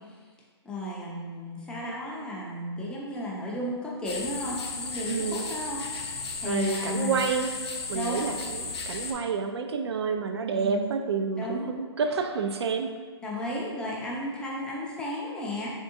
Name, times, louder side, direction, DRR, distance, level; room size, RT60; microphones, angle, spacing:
voice 1, 0.6-7.2 7.9-8.3 10.5-10.8 11.4-11.7 13.2-15.7, left 1 dB, 5° left, -5 dB, 0.4 m, -34 dB
sound 1, 4.1-9.1, left 4 dB, 65° left, 0.6 m, -35 dB
voice 2, 5.1-5.4 6.4-7.5 7.9-12.9, right 5 dB, 65° right, 6 dB, 0.4 m, -29 dB
3.6 x 3.4 x 2.6 m, 1.5 s
hypercardioid pair, 145°, 15 cm